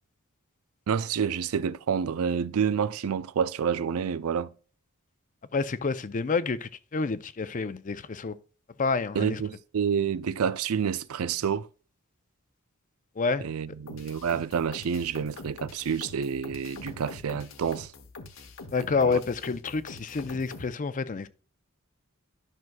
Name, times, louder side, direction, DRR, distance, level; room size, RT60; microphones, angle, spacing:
voice 1, 0.9-4.5 9.1-11.7 13.4-17.9 19.0-19.2, right 7 dB, 90° right, 0.4 m, -28 dB
voice 2, 5.5-8.4 8.8-9.4 13.2-13.5 18.7-21.3, left 4 dB, 40° left, 0.5 m, -28 dB
sound 1, 13.9-20.7, left 3 dB, 65° left, 1.1 m, -44 dB
12.0 x 6.1 x 2.3 m
head